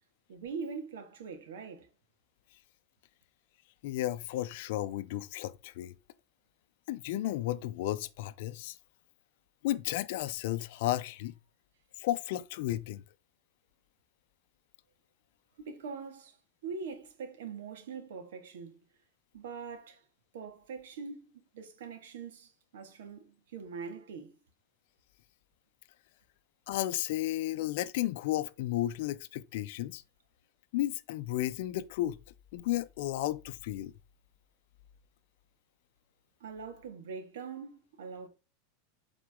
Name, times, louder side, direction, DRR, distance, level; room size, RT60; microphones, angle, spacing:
voice 1, 0.3-1.9 15.6-16.3 16.6-18.7 19.3-20.0 20.3-21.3 21.5-24.3 36.4-38.3, right 5 dB, 85° right, 1.8 m, -42 dB
voice 2, 3.8-5.9 6.9-8.8 9.6-11.3 12.0-13.0 26.7-30.0 30.7-32.2 32.5-33.9, left 14 dB, 60° left, 0.5 m, -33 dB
8.0 x 3.9 x 3.6 m
supercardioid pair, 160°, 0 cm